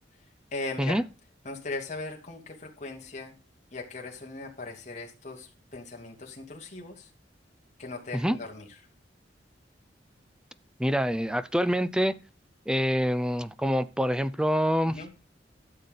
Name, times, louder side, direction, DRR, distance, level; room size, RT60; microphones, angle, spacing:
voice 1, 0.5-1.0 1.4-3.3 3.7-7.1 7.8-8.7 14.8-15.3, left 3 dB, 40° left, 2.9 m, -39 dB
voice 2, 10.8-12.1 12.7-15.0, equal, 5° right, 0.5 m, -26 dB
13.0 x 7.0 x 4.0 m
head